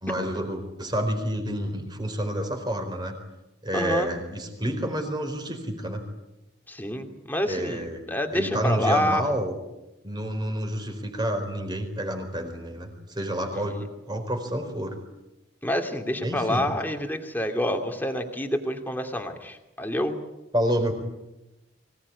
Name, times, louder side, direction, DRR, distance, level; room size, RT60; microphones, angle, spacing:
voice 1, 0.0-3.1 3.6-6.0 7.4-8.0 8.3-9.5 10.0-13.8 14.1-14.9 16.2-16.7 20.5-20.9, right 1 dB, 20° right, 5 dB, 4.4 m, -29 dB
voice 2, 3.7-4.1 6.7-9.2 13.5-13.8 15.6-20.2, left 1 dB, 10° left, 4 dB, 2.5 m, -28 dB
24.5 x 18.0 x 9.7 m, 0.98 s
head